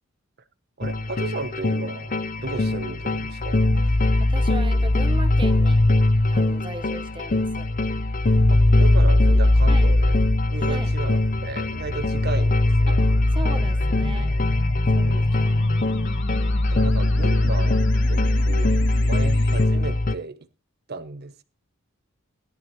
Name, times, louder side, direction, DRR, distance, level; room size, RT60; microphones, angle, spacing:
sound 1, 0.8-20.1, left 1 dB, 40° left, 0.7 m, -20 dB
voice 1, 0.8-3.6 8.5-10.2 10.5-13.0 14.9-15.3 16.7-17.8 18.1-18.7 19.0-20.5 20.9-21.4, right 3 dB, 50° right, 1.1 m, -34 dB
voice 2, 4.2-5.8 6.3-7.7 9.7-9.9 10.6-10.9 12.9-14.4 14.9-15.1 15.4-15.8, right 2 dB, 25° right, 1.3 m, -38 dB
sound 2, 9.6-19.6, left 2 dB, 60° left, 1.4 m, -37 dB
17.5 x 12.5 x 2.8 m
head